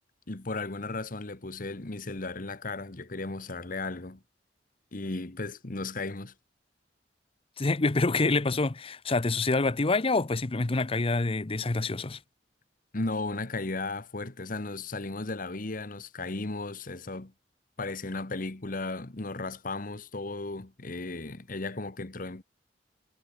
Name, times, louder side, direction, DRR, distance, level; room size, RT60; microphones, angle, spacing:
voice 1, 0.3-4.2 4.9-6.3 12.9-17.3 17.8-22.4, left 3 dB, 50° left, 1.4 m, -35 dB
voice 2, 7.6-12.2, left 3 dB, 30° left, 0.7 m, -26 dB
head